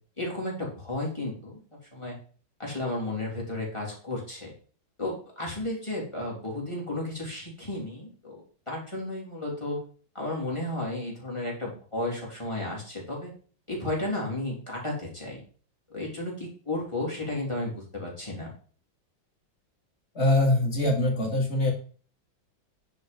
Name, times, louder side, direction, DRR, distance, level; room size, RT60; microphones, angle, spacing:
voice 1, 0.2-1.6 1.9-2.2 2.6-4.5 5.0-9.8 10.1-13.3 13.7-15.4 15.9-18.5, left 2 dB, 15° left, -3 dB, 2.9 m, -33 dB
voice 2, 20.1-21.7, left 1 dB, 35° left, -1 dB, 2.8 m, -23 dB
10.0 x 4.6 x 5.2 m, 0.41 s
omnidirectional pair, 2.2 m